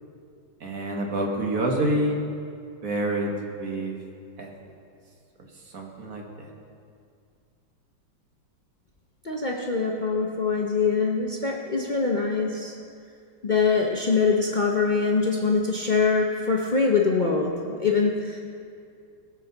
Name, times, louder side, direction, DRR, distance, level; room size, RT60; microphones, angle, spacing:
voice 1, 0.6-2.2 2.8-3.3 3.6-3.9 4.4-4.5 5.7-6.2, right 1 dB, 45° right, 1 dB, 1.6 m, -27 dB
voice 2, 9.2-12.7 13.4-18.4, left 4 dB, 75° left, -1 dB, 0.4 m, -23 dB
18.5 x 7.6 x 4.0 m, 2.3 s
omnidirectional pair, 2.2 m